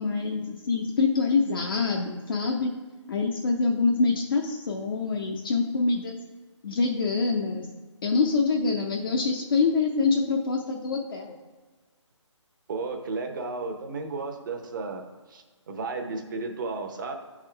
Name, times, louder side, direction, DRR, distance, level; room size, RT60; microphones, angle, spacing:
voice 1, 0.0-2.7 3.1-6.2 6.6-7.7 8.0-11.3, left 4 dB, 45° left, 0 dB, 0.6 m, -25 dB
voice 2, 12.7-15.0 15.3-17.1, right 3 dB, 40° right, 4 dB, 0.8 m, -33 dB
9.8 x 3.7 x 3.3 m, 1.4 s
figure-of-eight pair, 150°, 16 cm